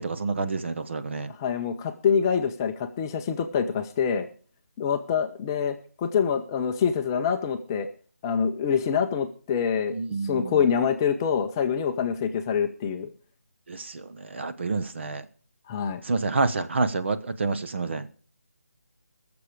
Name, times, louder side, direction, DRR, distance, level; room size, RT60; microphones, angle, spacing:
voice 1, 0.0-1.3 9.9-10.6 13.7-15.2 16.0-18.1, right 3 dB, 50° right, 11 dB, 1.0 m, -28 dB
voice 2, 1.3-4.3 4.8-7.9 8.2-10.0 10.2-13.1 15.7-16.0, left 7 dB, 15° left, 6 dB, 0.5 m, -25 dB
20.5 x 6.9 x 4.9 m, 0.42 s
figure-of-eight pair, 160°, 8 cm